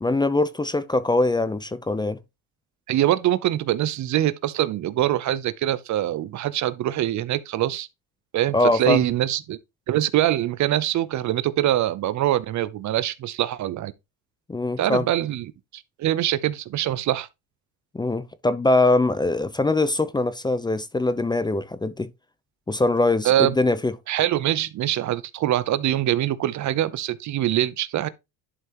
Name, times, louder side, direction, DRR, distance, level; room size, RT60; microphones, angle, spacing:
voice 1, 0.0-2.2 8.5-9.0 14.5-15.0 17.9-22.1 22.7-23.9, left 2 dB, 10° left, 0.6 m, -22 dB
voice 2, 2.9-7.9 8.3-9.6 9.9-13.9 14.8-15.5 15.7-17.3 23.2-23.5 24.1-28.1, right 13 dB, 50° right, 0.7 m, -23 dB
11.0 x 5.5 x 3.0 m
cardioid pair, 110°, 38 cm